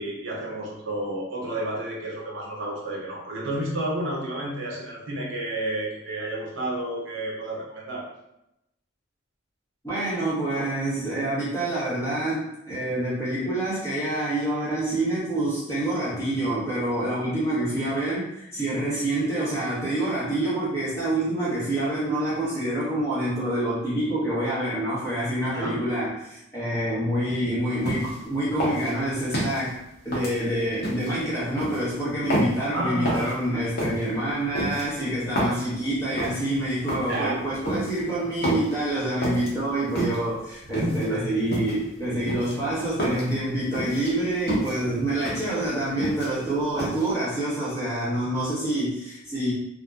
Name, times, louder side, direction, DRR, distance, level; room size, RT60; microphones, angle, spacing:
voice 1, 0.0-8.0 25.5-25.8 32.7-33.6 37.1-37.4 40.8-41.2, right 1 dB, 65° right, -3 dB, 0.6 m, -31 dB
voice 2, 9.8-29.8 30.0-49.5, right 1 dB, 15° left, -10 dB, 0.8 m, -27 dB
sound 1, 27.8-28.2 28.6-29.6 30.1-31.1 31.6-31.8 32.3-32.6 33.0-33.3 33.8-34.0 34.5-35.6 36.2-36.4 36.9-37.2 37.6-38.0 38.4-38.8 39.2-39.5 39.9-40.3 40.7-41.1 41.5-41.9 42.3-43.3 43.7-44.1 44.5-44.8 45.2-45.5 45.8-46.5 46.8-47.1, equal, 50° left, 0.8 m, -29 dB
2.6 x 2.1 x 2.3 m, 0.86 s
head